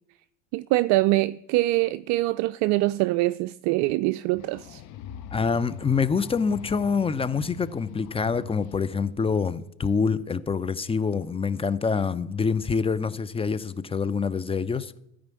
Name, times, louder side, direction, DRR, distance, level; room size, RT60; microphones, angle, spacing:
voice 1, 0.5-4.8, right 18 dB, 55° right, 0.4 m, -24 dB
sound 1, 4.3-9.4, left 10 dB, 55° left, 1.0 m, -42 dB
voice 2, 5.3-14.9, left 5 dB, 15° left, 0.6 m, -26 dB
14.0 x 5.0 x 8.4 m
hypercardioid pair, 70°, 35 cm